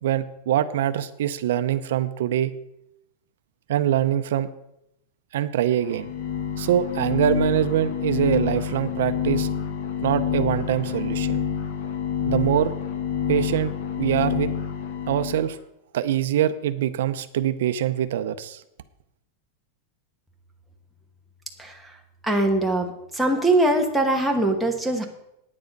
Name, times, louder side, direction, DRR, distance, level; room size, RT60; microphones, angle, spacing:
voice 1, 0.0-2.5 3.7-4.5 5.3-6.1 6.6-9.5 10.0-11.4 12.3-12.8 13.3-14.5 15.1-15.6 15.9-18.6, right 11 dB, 65° right, 11 dB, 0.6 m, -24 dB
sound 1, 5.8-15.5, left 7 dB, 50° left, 1.3 m, -27 dB
voice 2, 21.6-22.9 23.1-25.0, right 1 dB, ahead, 0 dB, 1.1 m, -22 dB
9.7 x 9.4 x 5.2 m, 0.82 s
supercardioid pair, 175°, 0 cm